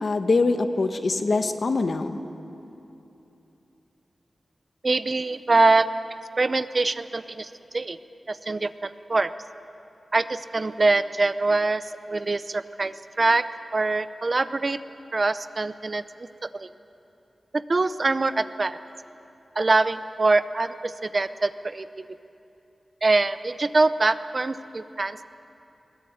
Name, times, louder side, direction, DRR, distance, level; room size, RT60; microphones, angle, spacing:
voice 1, 0.0-2.2, left 3 dB, 55° left, 8 dB, 1.2 m, -23 dB
voice 2, 4.8-5.9 6.4-8.0 8.3-9.3 10.1-13.4 13.7-14.8 15.1-16.3 16.5-16.7 17.5-18.8 19.6-21.9 23.0-25.3, right 3 dB, 40° right, 13 dB, 0.6 m, -24 dB
21.0 x 17.5 x 8.7 m, 2.9 s
wide cardioid pair, 115°, 0 cm